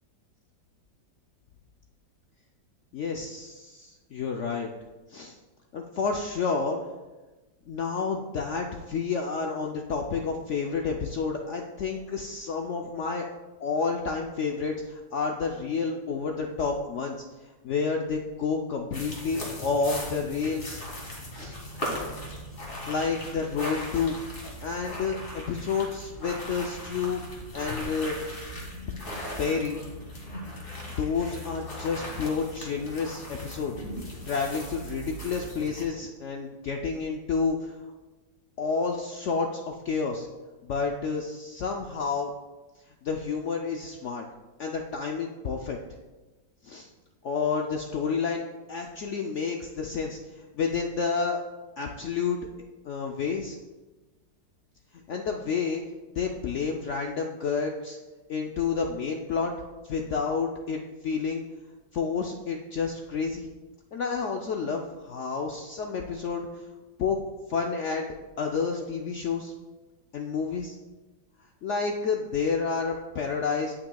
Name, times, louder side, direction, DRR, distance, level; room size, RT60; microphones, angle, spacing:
voice 1, 2.9-4.7 5.1-5.4 5.7-6.8 7.7-13.3 13.6-17.2 17.6-20.8 21.3-21.6 22.9-24.2 24.6-27.2 27.5-28.2 29.4-29.8 31.0-33.7 34.3-37.7 38.6-40.3 40.6-42.3 43.0-44.2 44.6-45.8 46.6-46.9 47.2-48.4 48.7-51.4 51.8-52.4 52.8-53.6 54.9-55.8 56.2-58.0 58.3-59.5 59.8-61.4 61.9-63.5 63.9-66.6 67.0-67.2 67.5-68.1 68.4-69.5 70.1-70.8 71.6-73.7, left 5 dB, 85° left, 2 dB, 0.6 m, -30 dB
sound 1, 18.9-35.8, equal, 30° left, 2.1 m, -38 dB
17.5 x 5.9 x 2.3 m, 1.2 s
omnidirectional pair, 1.9 m